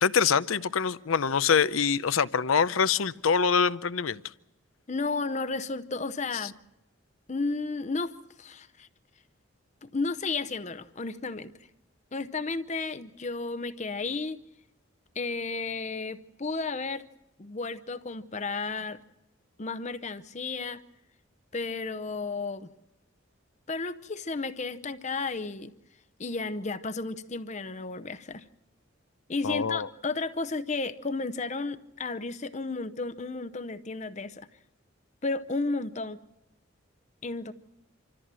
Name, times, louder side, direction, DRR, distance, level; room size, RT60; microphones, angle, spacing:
voice 1, 0.0-4.2 29.4-29.9, left 6 dB, 85° left, 15 dB, 0.6 m, -25 dB
voice 2, 4.9-6.5 7.3-8.1 8.4-8.9 9.8-11.5 12.1-14.4 15.2-17.0 17.4-19.0 19.6-20.8 21.5-22.7 23.7-25.7 26.2-28.4 29.3-34.5 35.2-36.2 37.2-37.5, left 3 dB, 35° left, 12 dB, 0.7 m, -33 dB
26.0 x 14.0 x 7.6 m, 0.93 s
head